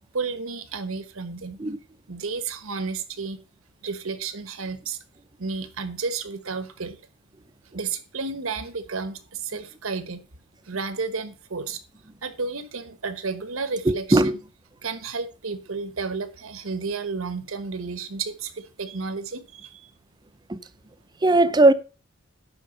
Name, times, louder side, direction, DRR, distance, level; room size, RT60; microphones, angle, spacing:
voice 1, 0.1-1.6 2.1-3.4 3.8-5.0 5.4-7.0 7.7-10.2 10.6-11.8 12.2-14.3 14.8-19.9, right 4 dB, 80° right, 1.3 m, -32 dB
voice 2, 13.9-14.4 20.5-20.6 21.2-21.7, right 2 dB, 20° right, 0.6 m, -18 dB
11.0 x 4.8 x 6.6 m
head